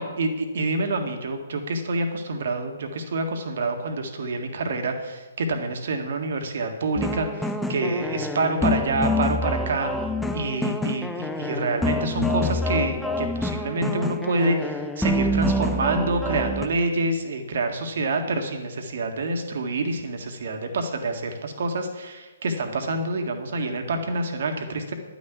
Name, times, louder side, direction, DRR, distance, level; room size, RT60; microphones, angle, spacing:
voice 1, 0.0-9.9 10.3-24.9, right 2 dB, 55° right, 5 dB, 1.7 m, -27 dB
sound 1, 7.0-16.7, left 1 dB, 5° left, 0.6 m, -27 dB
11.0 x 6.3 x 8.4 m, 1.3 s
figure-of-eight pair, 125°, 0 cm